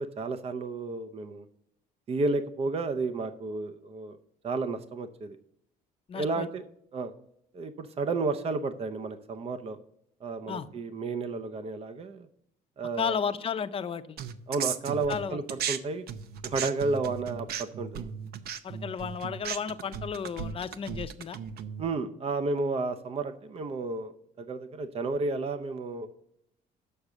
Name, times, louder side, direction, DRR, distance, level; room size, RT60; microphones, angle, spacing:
voice 1, 0.0-1.5 2.1-4.2 4.4-5.4 6.1-6.6 6.9-7.1 7.5-9.8 10.2-12.3 12.8-13.1 14.5-16.0 16.4-18.1 21.8-24.1 24.4-26.1, right 3 dB, 35° right, 11 dB, 0.7 m, -32 dB
voice 2, 6.1-6.5 10.5-10.7 13.0-14.2 15.1-15.4 18.6-21.4, left 7 dB, 35° left, 10 dB, 0.7 m, -33 dB
sound 1, 14.2-15.8 16.1-21.8, right 8 dB, 70° right, 0.7 m, -36 dB
6.7 x 6.6 x 7.2 m, 0.74 s
cardioid pair, 110°, 17 cm